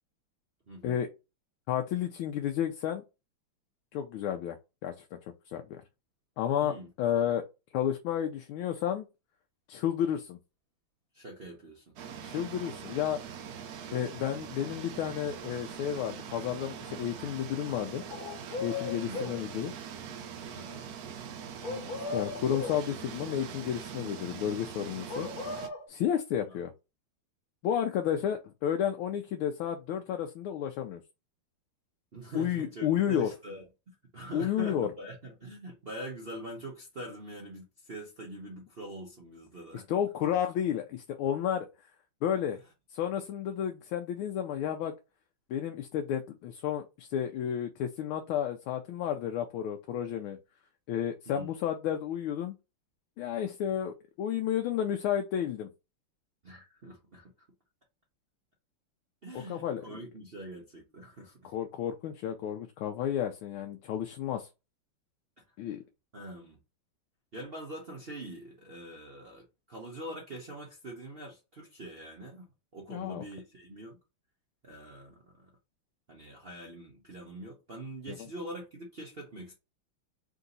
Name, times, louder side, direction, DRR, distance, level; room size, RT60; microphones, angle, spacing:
voice 1, 1.7-3.0 3.9-4.6 4.8-5.2 5.5-5.8 6.4-7.4 7.7-9.1 9.7-10.4 12.2-13.2 13.9-18.0 18.6-19.7 21.7-21.8 22.1-25.3 25.9-26.7 27.6-31.0 32.3-33.3 34.3-34.9 39.9-41.7 42.2-42.6 42.9-44.9 45.5-50.4 50.9-52.5 53.2-55.7 59.3-60.0 61.5-64.5 65.6-65.8 72.9-73.2, left 9 dB, 80° left, 1.4 m, -31 dB
voice 2, 11.1-11.9 18.9-19.3 20.5-20.9 26.5-26.6 32.1-39.9 51.3-51.5 56.4-57.3 59.2-61.5 65.6-65.7 66.1-66.6 67.3-74.0 74.6-75.5 76.1-79.5, right 1 dB, 65° right, 0.5 m, -44 dB
sound 1, 12.0-25.7, right 7 dB, 90° right, 0.8 m, -43 dB
sound 2, 18.1-19.4 21.6-22.8 25.1-25.9, left 4 dB, 55° left, 1.1 m, -37 dB
3.9 x 2.7 x 3.9 m
omnidirectional pair, 2.4 m